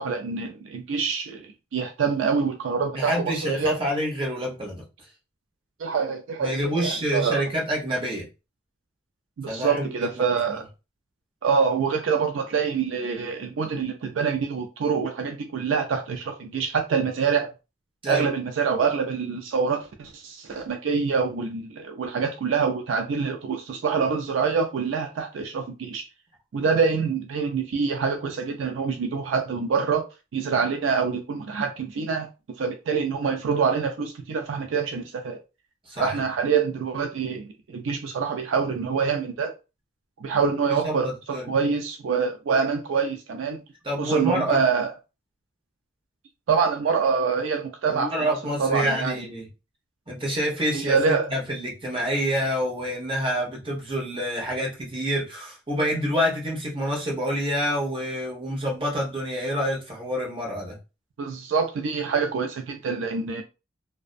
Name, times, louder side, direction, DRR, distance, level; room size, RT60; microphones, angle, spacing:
voice 1, 0.0-3.8 5.8-7.4 9.4-10.7 11.4-17.5 18.1-26.0 26.5-32.3 32.6-35.4 36.0-39.5 40.2-43.6 44.0-44.9 46.5-49.2 50.7-51.3 61.2-63.4, right 5 dB, 75° right, 0.4 m, -25 dB
voice 2, 2.9-4.8 6.4-8.3 9.5-10.2 18.0-18.3 35.9-36.2 40.7-41.5 43.8-44.6 47.9-49.5 50.1-60.8, equal, 25° right, 0.9 m, -27 dB
2.5 x 2.1 x 2.5 m
head